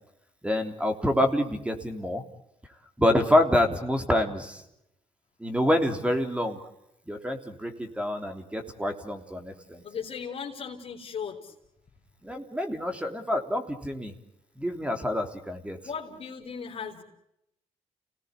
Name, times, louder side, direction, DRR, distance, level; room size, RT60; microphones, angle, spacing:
voice 1, 0.4-2.2 3.0-4.6 5.4-6.6 7.1-9.8 12.2-14.1 14.6-15.8, left 1 dB, 10° right, 5 dB, 3.6 m, -27 dB
voice 2, 9.8-11.5 15.8-17.0, left 6 dB, 50° left, -1 dB, 4.2 m, -37 dB
30.0 x 18.5 x 8.4 m, 0.83 s
cardioid pair, 85°, 13 cm